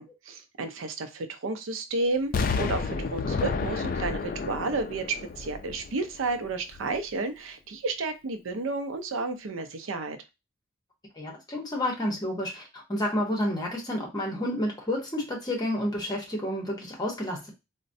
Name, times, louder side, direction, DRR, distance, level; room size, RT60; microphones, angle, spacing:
voice 1, 0.0-10.2, right 3 dB, 80° right, 0.5 m, -32 dB
Explosion, 2.3-6.3 6.7-6.8, left 4 dB, 45° left, 0.3 m, -30 dB
voice 2, 11.2-17.5, left 1 dB, 20° left, 0.9 m, -30 dB
4.0 x 2.1 x 2.6 m
head